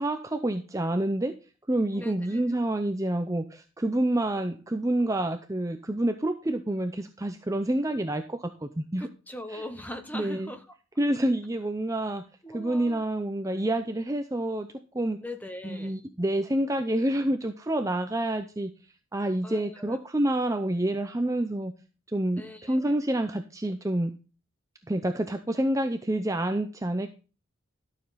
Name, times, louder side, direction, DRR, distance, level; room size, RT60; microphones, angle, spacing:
voice 1, 0.0-1.3 1.7-9.1 9.5-9.6 10.1-10.5 11.0-12.2 12.5-14.7 14.9-15.2 15.6-18.7 19.1-21.7 22.1-24.1 24.9-27.1, right 1 dB, 15° right, 7 dB, 0.6 m, -28 dB
voice 2, 1.9-2.4 9.0-10.6 12.4-13.0 15.2-16.0 19.4-20.0 22.4-23.0, left 1 dB, 10° left, 7 dB, 1.1 m, -41 dB
12.5 x 6.9 x 4.0 m, 0.33 s
head